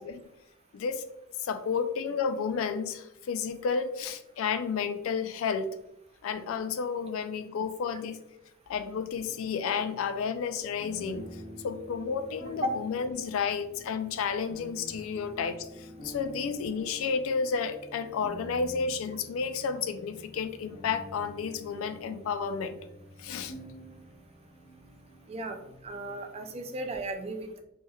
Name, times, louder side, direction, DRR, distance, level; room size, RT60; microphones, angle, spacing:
voice 1, 0.7-1.1 1.4-5.8 6.2-8.2 8.7-22.8 23.2-23.5, left 6 dB, 75° left, 11 dB, 0.3 m, -31 dB
sound 1, 9.1-27.0, right 1 dB, 35° left, 0.6 m, -48 dB
voice 2, 25.8-27.6, right 1 dB, 30° right, 5 dB, 0.4 m, -34 dB
3.2 x 3.1 x 2.2 m, 0.84 s
head